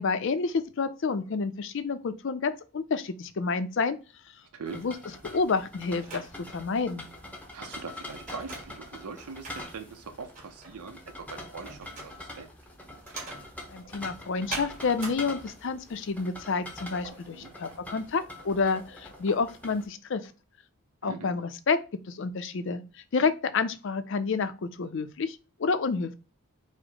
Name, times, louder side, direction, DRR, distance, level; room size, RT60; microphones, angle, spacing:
voice 1, 0.0-4.0 4.7-5.0 5.2-7.1 13.7-20.3 21.0-21.8 22.1-22.8 23.1-26.1, left 4 dB, 55° left, 0.4 m, -29 dB
voice 2, 4.5-4.9 7.5-12.5 17.3-17.5 21.0-21.3, right 5 dB, 85° right, 0.6 m, -42 dB
sound 1, 4.6-19.9, left 1 dB, 5° left, 0.6 m, -45 dB
sound 2, 5.2-15.1, right 3 dB, 35° right, 1.6 m, -43 dB
sound 3, 13.4-14.5 15.4-15.5 16.5-20.3, right 1 dB, 65° right, 1.0 m, -53 dB
4.7 x 2.0 x 4.0 m
head